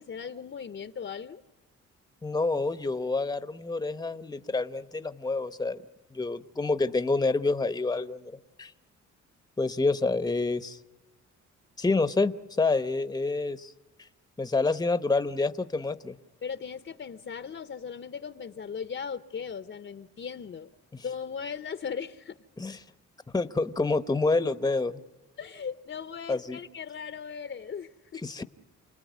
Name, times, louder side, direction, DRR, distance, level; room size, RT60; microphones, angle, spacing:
voice 1, 0.0-1.4 16.4-20.7 21.0-22.4 25.4-28.2, left 6 dB, 40° left, 12 dB, 0.9 m, -38 dB
voice 2, 2.2-5.8 6.1-8.3 8.6-8.7 9.6-10.8 11.8-13.7 14.4-16.2 20.9-21.0 22.6-22.8 23.3-25.0 26.3-26.6 28.2-28.4, left 3 dB, 15° left, 13 dB, 1.0 m, -28 dB
29.5 x 19.5 x 9.5 m, 1.1 s
cardioid pair, 90°, 30 cm